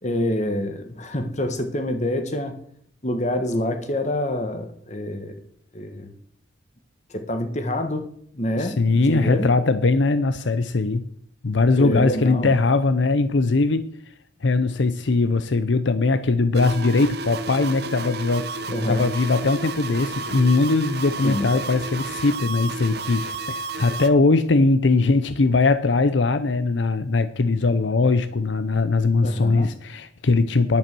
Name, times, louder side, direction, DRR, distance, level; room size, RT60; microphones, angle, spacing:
voice 1, 0.0-2.6 3.0-5.3 5.7-6.1 7.1-8.0 8.3-9.5 11.8-12.5 18.7-19.0 21.2-21.5 29.2-29.7, left 1 dB, 40° left, 7 dB, 1.5 m, -26 dB
voice 2, 8.6-11.1 11.4-14.1 14.4-18.5 18.9-30.8, left 3 dB, 70° left, 12 dB, 0.7 m, -20 dB
sound 1, 16.5-24.1, right 3 dB, 55° right, 0.9 m, -32 dB
10.5 x 8.9 x 6.1 m, 0.65 s
head